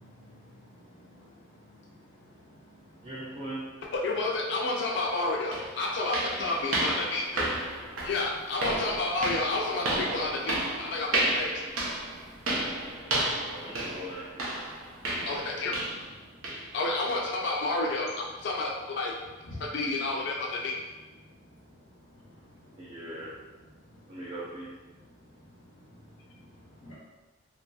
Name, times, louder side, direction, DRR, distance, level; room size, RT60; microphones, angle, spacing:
voice 1, 0.0-3.5 7.7-8.1 10.7-13.9 14.5-16.8 18.4-18.5 19.4-19.8 20.7-20.8 21.1-23.3 23.7-24.2 24.9-26.9, left 1 dB, 90° left, -8 dB, 0.7 m, -53 dB
voice 2, 3.0-3.6 13.5-14.5 22.8-23.3 24.1-24.7, right 1 dB, 30° right, -8 dB, 0.4 m, -39 dB
voice 3, 3.9-7.5 8.0-11.5 15.3-15.7 16.7-18.1 18.4-19.1 19.7-20.7, left 2 dB, 55° left, -1 dB, 0.4 m, -30 dB
sound 1, 4.9-5.0 5.5-16.2 16.4-16.7 17.1-17.3 17.8-17.9 18.4-18.5, right 1 dB, 90° right, 0.7 m, -32 dB
2.8 x 2.6 x 2.3 m, 1.2 s
head